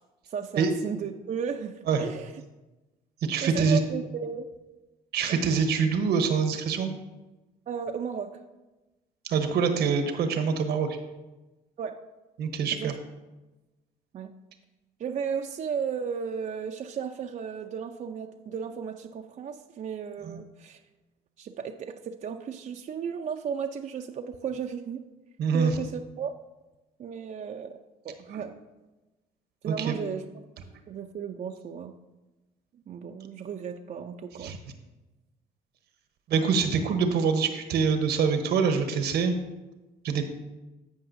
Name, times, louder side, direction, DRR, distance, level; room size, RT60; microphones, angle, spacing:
voice 1, 0.3-2.4 3.4-4.5 5.3-5.4 7.7-8.4 11.8-12.0 12.7-13.0 14.1-14.3 15.0-20.8 21.4-25.0 25.5-26.4 27.0-27.8 28.0-28.6 29.6-30.3 30.9-31.9 32.9-34.6, right 6 dB, 45° right, 4 dB, 0.5 m, -34 dB
voice 2, 3.2-3.8 5.1-6.9 9.2-11.0 12.4-12.9 20.2-20.4 25.4-25.7 28.3-28.4 29.7-30.0 34.4-34.6 36.3-39.3 40.0-40.2, right 5 dB, 70° right, 8 dB, 1.0 m, -25 dB
15.0 x 5.4 x 2.6 m, 1.1 s
supercardioid pair, 70°, 18 cm